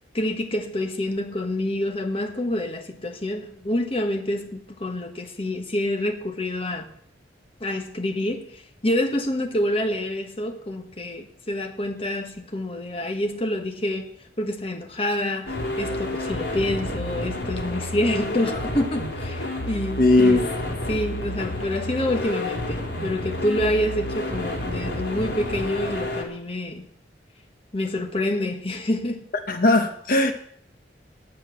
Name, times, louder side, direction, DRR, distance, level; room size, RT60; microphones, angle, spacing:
voice 1, 0.1-6.9 7.6-20.4 20.9-26.9 27.7-29.2, left 1 dB, 30° left, 5 dB, 1.2 m, -27 dB
sound 1, 15.5-26.2, left 1 dB, 75° left, 3.3 m, -30 dB
voice 2, 20.0-20.5 29.5-30.3, left 2 dB, 50° left, 6 dB, 1.2 m, -18 dB
10.0 x 7.6 x 9.1 m, 0.65 s
head